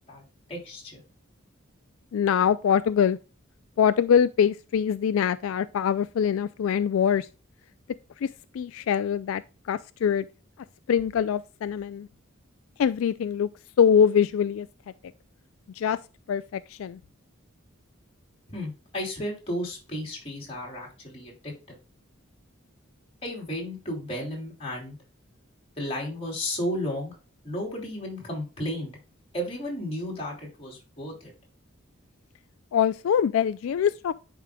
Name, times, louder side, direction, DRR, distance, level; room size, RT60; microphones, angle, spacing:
voice 1, 0.5-1.0 18.5-21.8 23.2-25.0 25.8-27.1 27.4-28.9 29.3-31.3, left 1 dB, 30° left, 3.0 m, -33 dB
voice 2, 2.1-3.2 3.8-7.3 8.2-8.3 8.5-9.4 9.7-10.3 10.9-12.1 12.8-13.5 13.8-14.7 15.8-16.0 16.3-16.4 16.8-17.0 32.7-34.1, left 8 dB, 80° left, 0.3 m, -23 dB
10.0 x 4.8 x 2.2 m
head